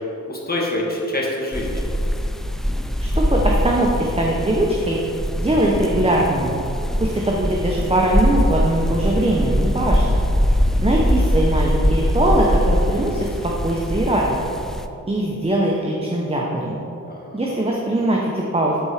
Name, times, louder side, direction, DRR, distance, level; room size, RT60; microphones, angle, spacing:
voice 1, 0.3-1.8 10.7-11.1 17.1-17.4, left 1 dB, 30° left, -3 dB, 1.7 m, -26 dB
sound 1, 1.5-14.9, equal, ahead, 0.3 m, -22 dB
voice 2, 3.0-5.0 5.3-6.6 7.0-10.2 10.8-14.4 15.1-16.8 17.3-18.8, right 1 dB, 20° right, -2 dB, 0.8 m, -21 dB
9.4 x 4.5 x 5.0 m, 2.8 s
wide cardioid pair, 90°, 32 cm